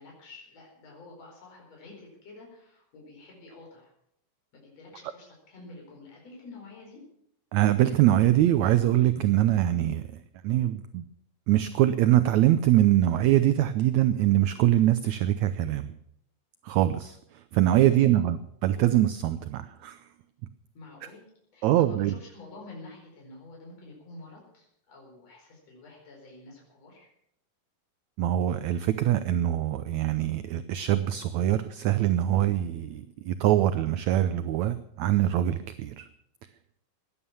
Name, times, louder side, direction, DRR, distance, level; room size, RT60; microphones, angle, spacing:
voice 1, 0.0-3.9 4.5-7.0 17.8-18.2 20.7-21.2 21.5-27.1, left 2 dB, 50° left, -1 dB, 5.8 m, -49 dB
voice 2, 7.5-10.1 10.4-11.1 11.5-15.9 16.6-20.1 21.6-22.1 28.2-36.1, right 13 dB, 75° right, 11 dB, 1.7 m, -23 dB
17.0 x 11.0 x 7.1 m, 0.72 s
omnidirectional pair, 3.9 m